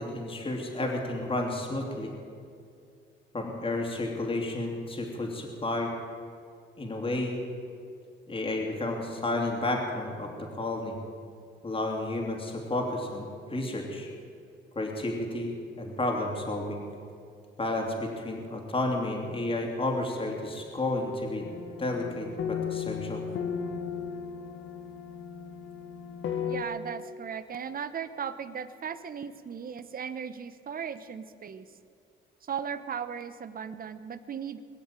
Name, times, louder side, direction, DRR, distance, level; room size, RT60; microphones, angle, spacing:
voice 1, 0.0-2.1 3.3-5.9 6.8-7.4 8.3-11.0 11.6-13.2 13.5-14.1 14.7-15.5 15.8-16.8 17.6-21.4 21.8-23.2, left 2 dB, 25° left, 0 dB, 2.9 m, -31 dB
sound 1, 21.4-26.6, left 7 dB, 75° left, 1.5 m, -35 dB
voice 2, 26.5-31.6 32.4-34.6, right 7 dB, 45° right, 12 dB, 1.0 m, -37 dB
22.0 x 7.3 x 9.1 m, 2.4 s
cardioid pair, 90°, 20 cm